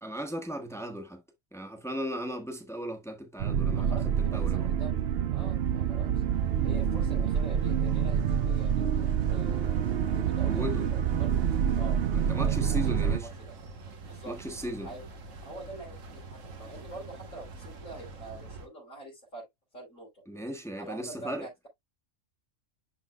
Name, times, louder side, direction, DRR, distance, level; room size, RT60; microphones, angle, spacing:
voice 1, 0.0-1.2 1.5-4.7 10.5-10.8 12.1-13.3 14.3-14.9 20.3-21.5, equal, ahead, 1.2 m, -36 dB
sound 1, 3.4-13.2, right 8 dB, 60° right, 0.8 m, -27 dB
voice 2, 3.7-4.9 5.3-6.1 6.6-11.3 11.8-12.0 12.3-13.5 14.0-14.3 14.8-15.0 15.4-19.5 19.7-20.1 20.8-21.7, right 2 dB, 80° left, 4.3 m, -45 dB
sound 2, 5.5-18.7, right 3 dB, 80° right, 1.7 m, -46 dB
11.5 x 3.8 x 2.3 m
omnidirectional pair, 1.3 m